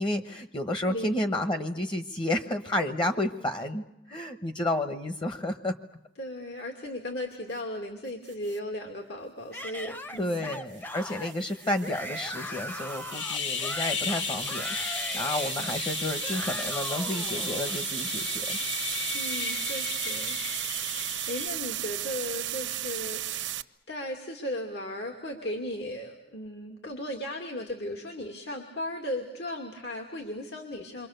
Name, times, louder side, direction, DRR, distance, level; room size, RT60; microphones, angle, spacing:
voice 1, 0.0-5.8 10.2-14.7 14.9-18.6, left 1 dB, 25° left, 7 dB, 1.1 m, -31 dB
voice 2, 6.2-10.5 10.8-10.9 19.1-20.4 20.7-21.0 21.3-23.5 23.9-31.1, left 1 dB, 65° left, 2 dB, 2.6 m, -36 dB
sound 1, 8.3-8.6 10.7-23.6, right 13 dB, 85° right, 0.9 m, -35 dB
Yell / Screaming, 9.5-17.8, left 1 dB, 10° left, 0.8 m, -40 dB
sound 2, 13.1-21.5, left 6 dB, 85° left, 2.0 m, -34 dB
28.5 x 25.0 x 6.8 m, 0.91 s
head